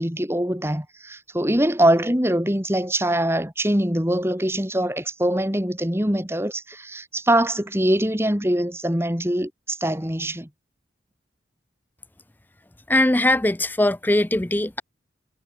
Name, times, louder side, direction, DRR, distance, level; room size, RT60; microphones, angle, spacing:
voice 1, 0.0-10.5, right 1 dB, 15° right, 3.6 m, -23 dB
voice 2, 12.9-14.8, left 1 dB, 10° left, 0.5 m, -20 dB
head